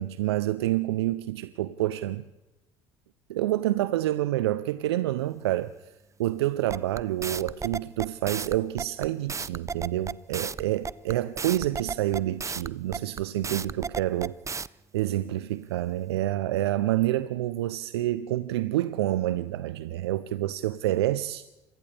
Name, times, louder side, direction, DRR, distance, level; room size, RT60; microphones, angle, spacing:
voice 1, 0.0-2.2 3.3-5.7 6.2-14.4 14.9-21.4, right 14 dB, 80° right, 0.6 m, -28 dB
sound 1, 6.7-14.7, right 5 dB, 20° right, 0.6 m, -33 dB
29.5 x 26.5 x 3.4 m
hypercardioid pair, 60°, 13 cm